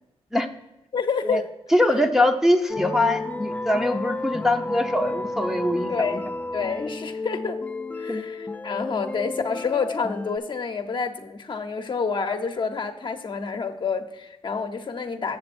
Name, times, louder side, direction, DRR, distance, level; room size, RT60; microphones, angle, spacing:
voice 1, 0.9-1.5 5.9-6.3 6.5-7.6 8.0-15.4, left 5 dB, 45° left, 6 dB, 0.9 m, -28 dB
voice 2, 1.7-6.2 8.1-8.2, left 1 dB, 5° right, 2 dB, 0.7 m, -22 dB
sound 1, 2.7-10.4, left 2 dB, 15° left, 0.3 m, -32 dB
7.9 x 6.8 x 4.3 m, 0.95 s
cardioid pair, 80°, 11 cm